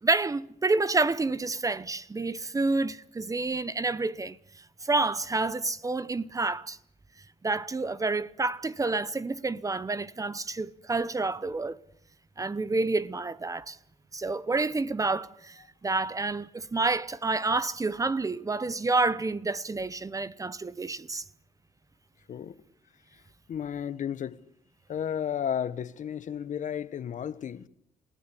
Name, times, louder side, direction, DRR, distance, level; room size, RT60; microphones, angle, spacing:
voice 1, 0.0-4.4 4.8-6.8 7.4-11.8 12.4-13.8 14.1-21.2, right 3 dB, 20° right, 0.9 m, -29 dB
voice 2, 23.5-24.4 24.9-27.7, left 8 dB, 55° left, 1.2 m, -33 dB
28.0 x 16.5 x 10.0 m
cardioid pair, 100°, 15 cm